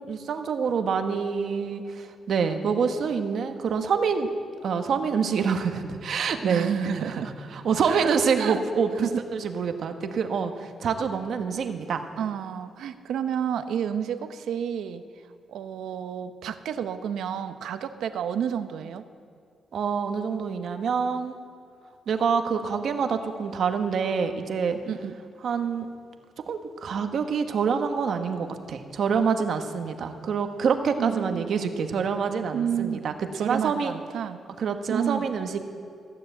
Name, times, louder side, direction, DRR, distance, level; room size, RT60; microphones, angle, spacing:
voice 1, 0.0-4.3 4.6-6.7 6.9-7.2 7.5-12.0 19.7-21.4 22.1-24.8 25.4-25.9 26.5-33.9 34.6-35.6, right 6 dB, 60° right, 6 dB, 1.1 m, -26 dB
voice 2, 6.4-7.3 7.9-8.6 9.0-9.2 12.2-15.0 15.5-19.0 24.8-25.1 31.0-31.6 32.5-33.1 33.4-34.4 34.9-35.3, right 8 dB, 85° right, 10 dB, 0.8 m, -30 dB
15.0 x 9.6 x 7.7 m, 2.4 s
cardioid pair, 135°, 0 cm